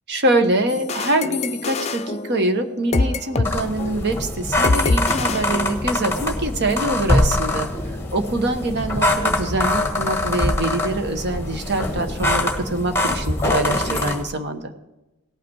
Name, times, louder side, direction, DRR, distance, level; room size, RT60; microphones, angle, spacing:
voice 1, 0.1-7.7 8.1-14.7, right 2 dB, 50° right, 7 dB, 1.1 m, -24 dB
sound 1, 0.7-3.5 3.8-4.0 4.6-6.2, left 3 dB, 30° left, 0.5 m, -25 dB
sound 2, 3.4-14.2, left 1 dB, 10° left, 1.2 m, -23 dB
17.5 x 5.9 x 4.5 m, 1.0 s
head